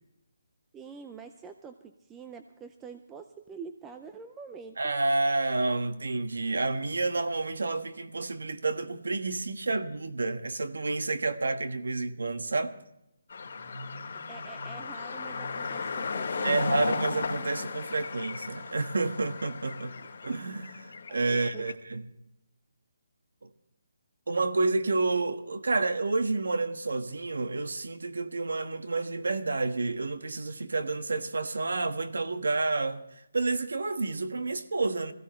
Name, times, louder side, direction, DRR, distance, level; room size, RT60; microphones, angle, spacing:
voice 1, 0.7-4.9 14.3-16.5 21.1-21.7, right 5 dB, 10° right, 0.5 m, -46 dB
voice 2, 4.8-12.7 16.4-22.0 24.3-33.0 33.3-35.1, right 3 dB, 90° right, 1.5 m, -29 dB
sound 1, 13.3-21.7, left 4 dB, 50° left, 2.6 m, -35 dB
21.0 x 15.5 x 3.2 m
hypercardioid pair, 170°, 0 cm